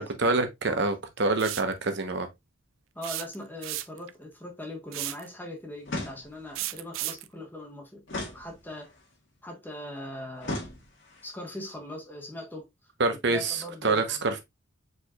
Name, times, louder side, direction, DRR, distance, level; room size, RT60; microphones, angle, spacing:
voice 1, 0.0-2.3 13.0-14.4, right 3 dB, 60° right, 1.0 m, -26 dB
sound 1, 1.4-1.7 3.0-4.1 4.9-5.3 6.6-7.3, right 15 dB, 75° right, 0.4 m, -34 dB
voice 2, 2.9-8.0 8.3-8.9 9.4-10.6 11.2-12.7 13.3-14.2, left 1 dB, 10° left, 1.3 m, -40 dB
sound 2, 5.9-6.6 8.1-9.0 10.4-11.3, left 1 dB, 65° left, 1.9 m, -37 dB
4.8 x 4.5 x 2.3 m
head